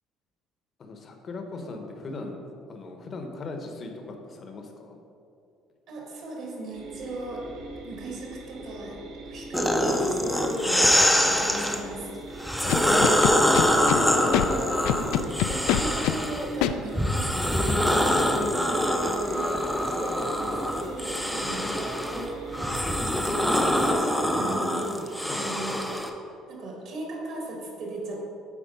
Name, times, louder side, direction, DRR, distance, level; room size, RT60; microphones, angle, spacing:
voice 1, 0.8-2.4 2.7-5.0 12.5-13.4 13.8-14.5 18.1-18.6 21.4-21.8 25.1-25.5, left 3 dB, 30° left, 4 dB, 0.8 m, -38 dB
voice 2, 5.9-7.5 7.8-9.0 9.2-12.5 14.1-18.3 18.7-22.9 23.2-26.0 26.5-28.2, right 2 dB, 50° right, -1 dB, 1.6 m, -37 dB
sound 1, 6.7-24.0, right 2 dB, 75° right, 1.4 m, -42 dB
sound 2, 9.5-11.8 12.4-16.5 16.9-26.1, equal, ahead, 0.5 m, -24 dB
Scratching (performance technique), 12.7-14.0 14.3-14.5 14.9-16.2 16.6-16.7, left 13 dB, 80° left, 0.3 m, -24 dB
8.2 x 4.3 x 5.2 m, 2.6 s
cardioid pair, 170°, 0 cm